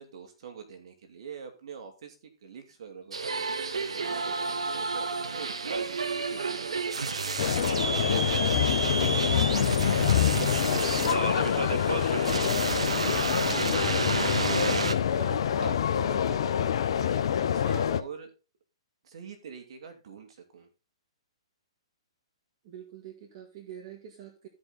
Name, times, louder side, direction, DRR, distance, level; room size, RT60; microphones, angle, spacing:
voice 1, 0.0-2.2 2.4-5.1 5.3-12.4 12.8-13.2 13.7-16.8 17.1-18.3 19.0-20.7, right 5 dB, 60° right, 5 dB, 2.7 m, -45 dB
sound 1, 3.1-14.9, right 4 dB, 85° right, 1.2 m, -30 dB
sound 2, 7.4-18.0, left 9 dB, 60° left, 0.8 m, -26 dB
voice 2, 10.3-10.7 22.6-24.5, right 10 dB, 45° right, 0 dB, 2.0 m, -46 dB
13.5 x 5.4 x 4.0 m, 0.30 s
hypercardioid pair, 130°, 3 cm